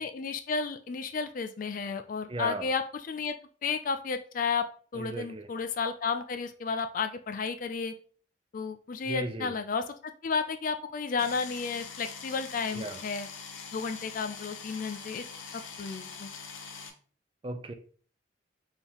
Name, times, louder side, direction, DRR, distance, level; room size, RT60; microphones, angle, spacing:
voice 1, 0.0-3.3 3.6-4.7 4.9-7.9 8.5-9.8 10.2-13.3 13.7-15.2 15.5-16.3, left 5 dB, 45° left, 8 dB, 0.3 m, -32 dB
voice 2, 2.3-2.7 4.9-5.5 9.1-9.5 12.7-13.0 17.4-17.7, right 2 dB, 25° right, 8 dB, 0.4 m, -36 dB
sound 1, 11.2-16.9, left 6 dB, 85° left, 0.7 m, -43 dB
4.4 x 3.5 x 2.9 m, 0.42 s
head